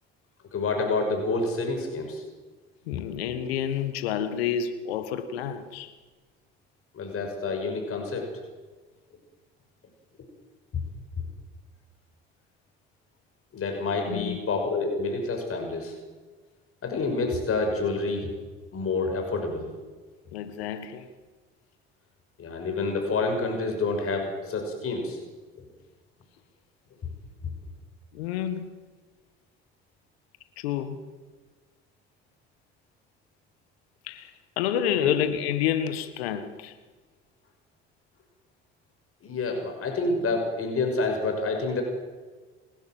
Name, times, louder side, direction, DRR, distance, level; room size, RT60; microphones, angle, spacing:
voice 1, 0.5-2.2 6.9-8.4 13.5-15.9 16.8-18.3 18.7-19.7 22.4-25.2 25.6-25.7 27.0-27.1 35.0-35.1 39.2-41.8, left 3 dB, 45° left, 3 dB, 6.1 m, -28 dB
voice 2, 2.9-5.9 14.1-14.4 20.3-21.1 28.1-28.7 30.6-31.1 34.0-36.8, left 9 dB, 80° left, 10 dB, 1.7 m, -29 dB
29.0 x 12.0 x 7.8 m, 1.3 s
hypercardioid pair, 60°, 31 cm